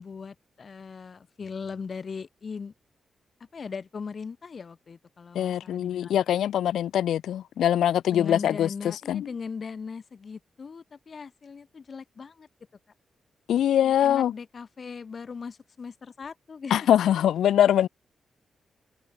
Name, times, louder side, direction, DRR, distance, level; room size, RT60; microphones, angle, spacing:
voice 1, 0.0-2.7 3.5-6.2 8.1-12.5 13.8-16.7, left 5 dB, 55° left, 2.2 m, -39 dB
voice 2, 5.4-9.2 13.5-14.3 16.7-17.9, left 10 dB, 80° left, 0.3 m, -23 dB
supercardioid pair, 40°, 0 cm